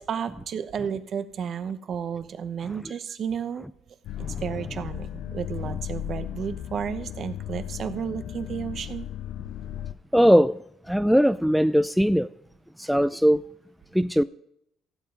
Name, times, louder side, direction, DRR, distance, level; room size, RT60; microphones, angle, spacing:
voice 1, 0.0-3.7 4.4-9.1, right 7 dB, 55° right, 0.9 m, -32 dB
sound 1, 4.0-9.9, left 11 dB, 75° left, 0.4 m, -35 dB
voice 2, 10.1-12.3 12.8-13.4 13.9-14.2, equal, ahead, 0.4 m, -21 dB
15.5 x 7.8 x 3.9 m
cardioid pair, 90°, 0 cm